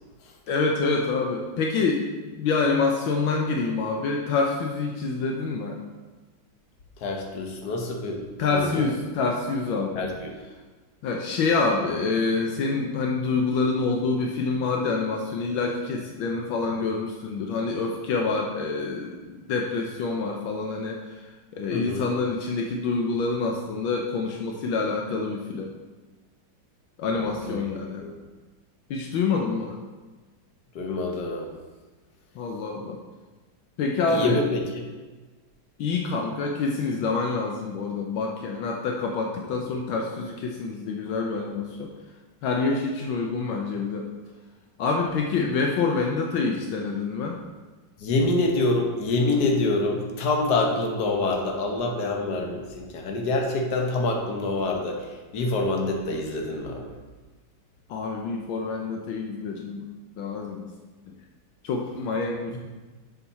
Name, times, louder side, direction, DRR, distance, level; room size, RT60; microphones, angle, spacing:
voice 1, 0.5-5.8 8.4-10.1 11.0-25.7 27.0-28.0 28.9-29.8 32.3-33.0 33.8-34.4 35.8-41.9 42.4-44.1 44.8-47.4 57.9-59.8 60.2-60.7 61.1-61.2 61.6-62.6, left 4 dB, 80° left, 1 dB, 1.5 m, -27 dB
voice 2, 7.0-8.9 10.0-10.3 21.7-22.1 27.1-27.7 28.0-28.1 30.8-31.5 34.1-34.9 48.0-57.0 62.5-62.6, left 2 dB, 55° left, 1 dB, 1.6 m, -26 dB
7.2 x 7.0 x 4.1 m, 1.3 s
omnidirectional pair, 2.2 m